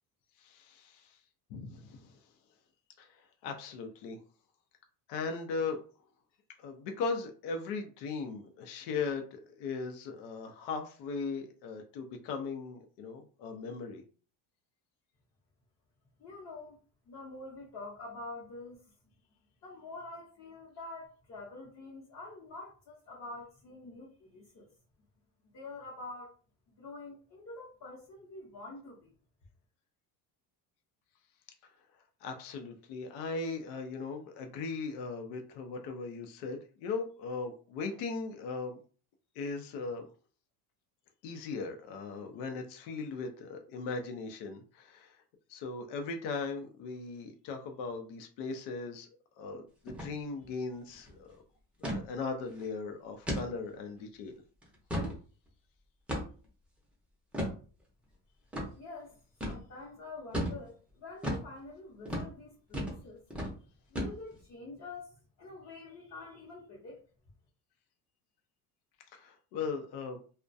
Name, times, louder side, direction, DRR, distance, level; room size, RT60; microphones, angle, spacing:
voice 1, 0.4-1.2 1.5-2.2 3.0-4.2 5.1-5.8 6.6-14.0 32.2-38.8 39.4-40.0 41.2-45.2 45.5-49.1 49.4-51.4 51.8-54.3 69.1-70.2, left 4 dB, 75° left, 0.6 m, -38 dB
voice 2, 16.2-16.8 17.1-18.8 19.6-24.7 25.5-26.3 26.8-29.1 58.8-59.2 59.4-63.2 63.9-67.0, left 2 dB, 40° left, 0.7 m, -46 dB
sound 1, 49.9-50.1 50.4-50.5 50.9-51.1 51.8-52.0 52.5-52.6 53.3-53.5 54.0-54.1 54.6-55.2 56.1-56.5 57.3-57.6 58.5-58.7 59.4-59.6 60.3-60.6 61.2-61.5 62.0-62.3 62.7-63.0 63.3-63.5 63.9-64.4, equal, 5° right, 0.5 m, -34 dB
2.2 x 2.1 x 2.5 m
cardioid pair, 140°, 40 cm